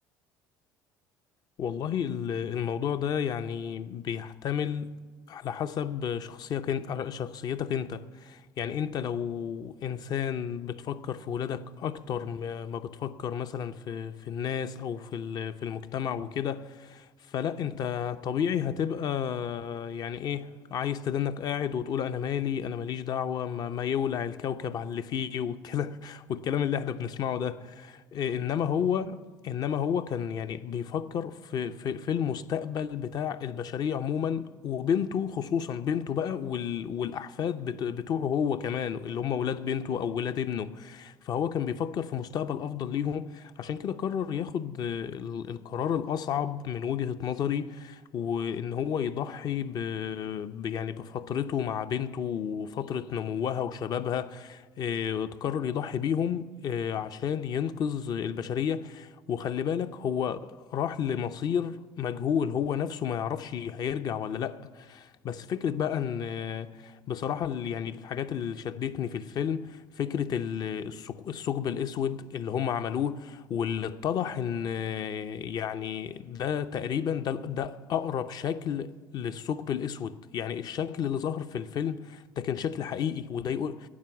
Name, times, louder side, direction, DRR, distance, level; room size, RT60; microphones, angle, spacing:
voice 1, 1.6-4.9 5.3-27.7 28.2-83.7, left 8 dB, 50° left, 0.6 m, -31 dB
12.5 x 9.2 x 7.1 m
supercardioid pair, 80°, 9 cm